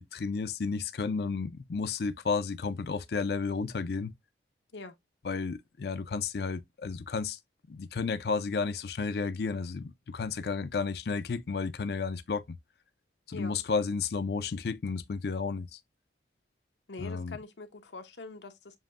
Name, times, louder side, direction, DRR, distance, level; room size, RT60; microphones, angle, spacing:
voice 1, 0.0-4.1 5.2-7.4 7.7-12.6 13.3-15.8 17.0-17.4, left 4 dB, 65° left, 0.5 m, -32 dB
voice 2, 13.3-13.6 16.9-18.8, left 3 dB, 80° left, 0.8 m, -44 dB
7.3 x 2.7 x 2.4 m
head